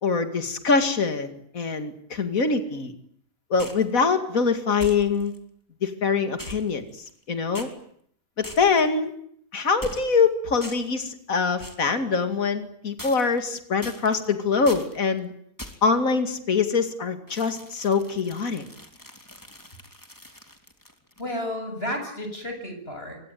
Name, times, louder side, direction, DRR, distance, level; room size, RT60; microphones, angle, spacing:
voice 1, 0.0-2.9 3.5-5.3 5.8-7.7 8.4-9.1 9.5-15.3 15.8-18.6, left 5 dB, 65° left, 8 dB, 2.7 m, -24 dB
sound 1, 3.6-3.9 4.8-5.4 6.4-7.2 7.5-7.7 8.4-8.9 9.8-10.2 10.6-11.0 11.6-11.9 13.0-13.5 13.8-14.3 14.7-15.0 15.6-16.0 17.3-21.3, left 1 dB, 15° left, 3.3 m, -42 dB
voice 2, 21.2-23.2, left 1 dB, 40° left, 6 dB, 7.8 m, -32 dB
26.5 x 24.0 x 9.3 m, 0.67 s
omnidirectional pair, 1.5 m